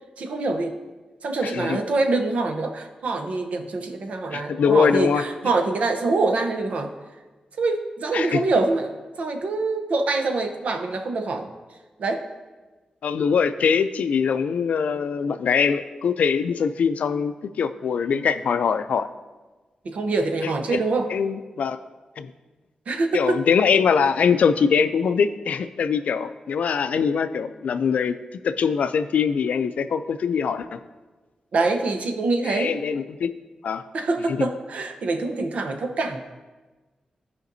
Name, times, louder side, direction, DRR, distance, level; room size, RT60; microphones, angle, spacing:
voice 1, 0.2-0.8 1.2-6.9 7.6-11.5 12.0-12.2 19.8-21.1 22.9-23.4 31.5-32.7 33.9-36.2, right 3 dB, 70° right, 6 dB, 0.7 m, -25 dB
voice 2, 1.4-1.8 4.3-5.2 8.1-8.4 13.0-19.1 20.7-20.8 21.1-21.8 22.2-22.3 23.1-28.1 28.4-30.8 32.5-33.3 33.6-33.8 34.3-34.5, left 6 dB, 85° left, 11 dB, 0.4 m, -22 dB
14.0 x 5.1 x 2.7 m, 1.3 s
wide cardioid pair, 130°, 2 cm